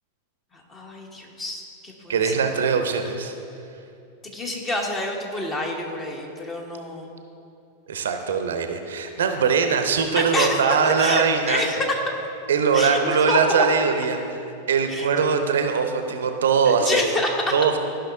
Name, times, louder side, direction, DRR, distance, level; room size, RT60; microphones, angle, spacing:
voice 1, 0.7-2.3 4.2-7.1 10.1-10.6 11.0-12.0 12.7-13.4 14.9-15.1 16.8-17.4, left 2 dB, 20° left, 1 dB, 1.2 m, -28 dB
voice 2, 2.1-3.3 7.9-11.6 12.5-14.4 14.7-17.1 17.5-17.8, right 6 dB, 65° right, 6 dB, 0.6 m, -21 dB
14.0 x 5.7 x 2.7 m, 2.7 s
figure-of-eight pair, 90°, 0 cm